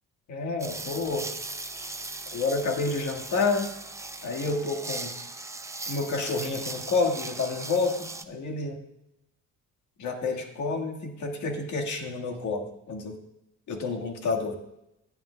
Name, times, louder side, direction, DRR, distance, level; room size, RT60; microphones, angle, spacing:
voice 1, 0.3-1.3 2.3-3.7 4.2-5.1 5.9-8.8 10.0-13.2 13.7-14.6, left 3 dB, 75° left, 3 dB, 1.7 m, -29 dB
sound 1, 0.6-8.2, right 2 dB, 10° right, 0.6 m, -38 dB
16.0 x 9.2 x 2.2 m, 0.85 s
cardioid pair, 90°, 30 cm